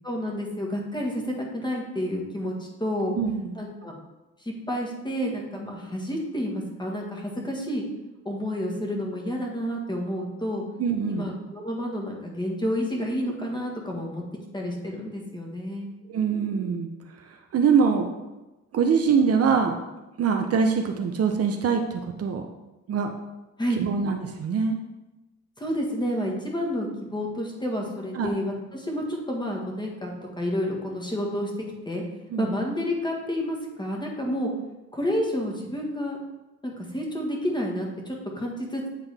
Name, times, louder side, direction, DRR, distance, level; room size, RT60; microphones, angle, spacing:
voice 1, 0.0-3.1 3.5-4.0 4.4-7.8 8.2-10.6 11.1-14.2 14.5-15.9 23.6-23.8 25.6-31.5 31.8-32.0 32.4-34.5 34.9-36.2 36.6-38.9, equal, 15° left, -1 dB, 1.6 m, -30 dB
voice 2, 3.1-3.5 10.8-11.3 16.1-16.9 17.3-18.1 18.7-19.8 20.2-22.4 22.9-23.1 23.8-24.7 28.1-28.3 32.3-32.5, right 6 dB, 55° right, 4 dB, 0.7 m, -23 dB
8.9 x 3.8 x 3.4 m, 1.0 s
cardioid pair, 90°, 30 cm